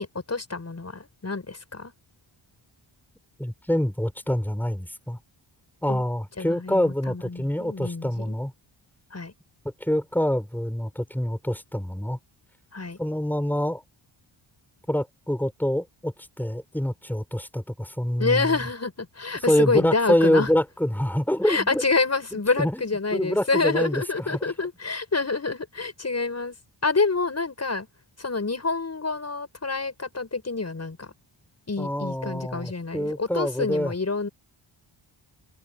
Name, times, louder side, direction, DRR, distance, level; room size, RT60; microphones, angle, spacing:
voice 1, 0.0-1.9 5.9-6.0 6.4-8.4 9.1-9.3 12.7-13.0 18.2-20.5 21.5-26.5 26.8-27.9 28.2-31.1 31.7-34.3, left 3 dB, 30° left, 7.5 m, -27 dB
voice 2, 3.4-5.2 5.8-8.5 9.8-12.2 13.0-13.8 14.9-18.5 19.3-21.8 22.3-24.5 31.8-33.9, left 1 dB, 5° left, 6.8 m, -26 dB
wide cardioid pair, 170°, 50 cm